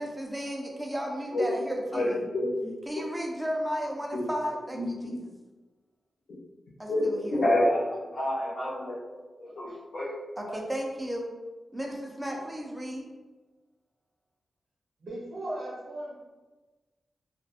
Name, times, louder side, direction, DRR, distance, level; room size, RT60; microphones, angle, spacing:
voice 1, 0.0-2.2 2.9-5.2 6.8-7.5 10.4-11.3 11.7-13.1, equal, 10° right, -1 dB, 0.4 m, -34 dB
voice 2, 1.9-2.7 4.1-4.3 4.7-5.2 6.9-8.9 9.4-10.1 10.4-10.6, left 1 dB, 70° left, -9 dB, 0.6 m, -28 dB
voice 3, 15.0-16.1, right 1 dB, 65° right, -8 dB, 0.7 m, -37 dB
2.7 x 2.2 x 2.4 m, 1.2 s
wide cardioid pair, 155°, 0 cm